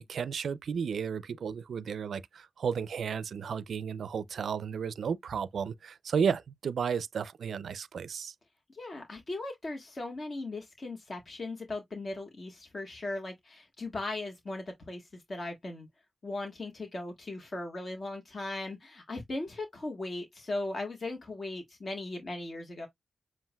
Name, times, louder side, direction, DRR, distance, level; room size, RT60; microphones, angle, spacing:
voice 1, 0.0-8.3, right 6 dB, 75° right, 0.4 m, -33 dB
voice 2, 8.7-15.9 16.2-22.9, left 2 dB, 50° left, 1.4 m, -38 dB
7.4 x 2.5 x 2.2 m
cardioid pair, 50°, 0 cm